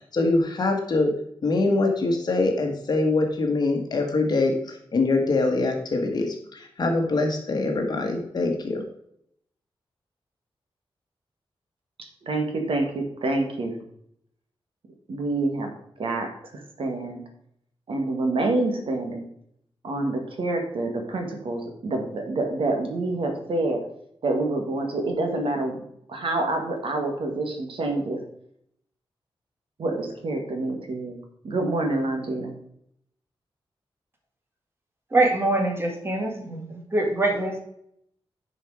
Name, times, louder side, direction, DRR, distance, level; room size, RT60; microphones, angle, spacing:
voice 1, 0.1-1.1 1.4-8.8, left 2 dB, 45° left, 3 dB, 1.6 m, -24 dB
voice 2, 12.2-13.8 15.1-15.7 16.0-16.3 16.8-17.2 17.9-19.3 19.8-23.8 24.2-25.8 26.1-28.2 29.8-31.2 31.4-32.5, right 2 dB, 65° right, 3 dB, 1.8 m, -27 dB
voice 3, 35.1-37.6, right 2 dB, 25° right, 2 dB, 1.8 m, -24 dB
10.0 x 5.1 x 4.8 m, 0.71 s
wide cardioid pair, 175°, 10 cm